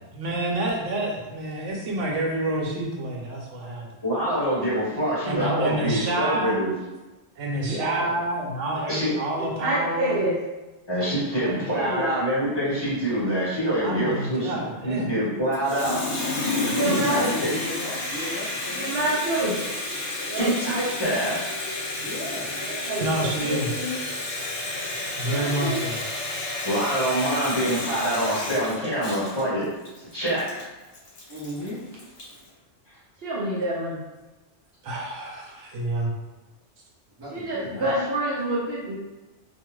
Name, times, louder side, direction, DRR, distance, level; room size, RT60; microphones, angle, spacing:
voice 1, 0.1-3.9 5.2-6.6 7.4-10.3 11.4-11.6 13.8-15.1 16.6-16.7 23.0-23.8 25.0-26.0 34.8-36.1, right 1 dB, 85° right, -1 dB, 1.0 m, -28 dB
voice 2, 4.0-6.7 8.9-9.1 10.9-16.0 16.8-17.5 20.3-21.4 26.6-29.7 30.1-30.6, equal, 25° left, -10 dB, 1.0 m, -25 dB
voice 3, 7.6-8.3 8.6-8.8 16.6-19.4 22.0-22.5 31.3-31.8 35.5-35.6 37.2-37.9, equal, 30° right, -6 dB, 0.5 m, -36 dB
voice 4, 9.4-10.4 11.4-12.1 16.6-17.2 18.7-19.6 20.2-20.5 22.6-24.0 25.2-25.8 33.2-34.0 37.3-39.0, right 1 dB, 60° right, -5 dB, 0.7 m, -28 dB
Water tap faucet, 15.5-32.4, left 2 dB, 65° left, 0.9 m, -31 dB
2.4 x 2.3 x 3.0 m, 1.1 s
omnidirectional pair, 1.2 m